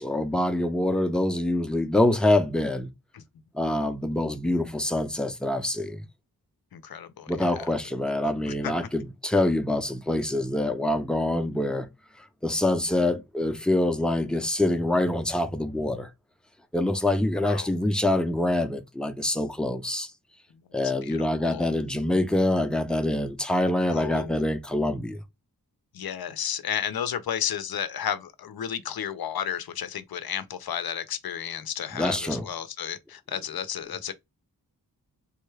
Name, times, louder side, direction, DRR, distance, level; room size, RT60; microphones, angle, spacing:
voice 1, 0.0-2.9 3.5-6.0 7.3-11.9 12.4-16.1 16.7-20.1 20.7-25.2 31.9-32.5, left 1 dB, ahead, 0.5 m, -25 dB
voice 2, 6.7-7.5 8.5-8.7 17.4-17.7 21.0-21.7 23.9-24.4 25.9-34.1, left 9 dB, 65° left, 0.6 m, -33 dB
3.7 x 2.2 x 3.2 m
wide cardioid pair, 75°, 40 cm